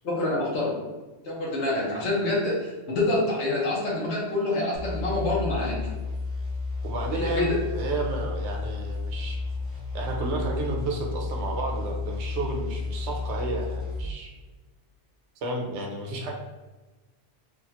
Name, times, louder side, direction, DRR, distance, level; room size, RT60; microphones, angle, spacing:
voice 1, 0.0-0.8 1.2-5.8 7.1-7.5, left 2 dB, 70° left, -4 dB, 1.2 m, -26 dB
sound 1, 4.7-14.2, left 3 dB, 25° left, 1.5 m, -32 dB
voice 2, 6.8-9.4 9.9-14.3 15.4-16.3, right 2 dB, 70° right, 1 dB, 0.9 m, -32 dB
3.5 x 2.3 x 2.8 m, 1.2 s
omnidirectional pair, 1.2 m